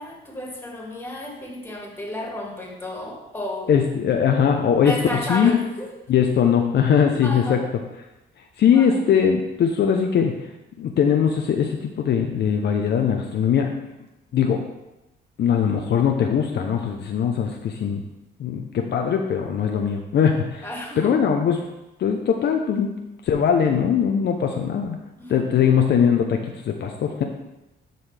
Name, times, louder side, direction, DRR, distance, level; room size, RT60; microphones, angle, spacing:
voice 1, 0.0-3.8 4.8-5.9 7.2-7.6 8.6-9.0 20.6-21.1 25.2-25.4, left 1 dB, 10° left, -2 dB, 2.1 m, -32 dB
voice 2, 3.7-5.5 6.1-7.6 8.6-10.3 10.8-13.7 14.3-14.6 15.4-18.0 18.4-20.7 21.0-21.6 22.0-23.0 23.2-25.0 25.3-27.2, left 7 dB, 60° left, 3 dB, 0.7 m, -20 dB
11.5 x 4.0 x 3.4 m, 0.98 s
cardioid pair, 90°, 20 cm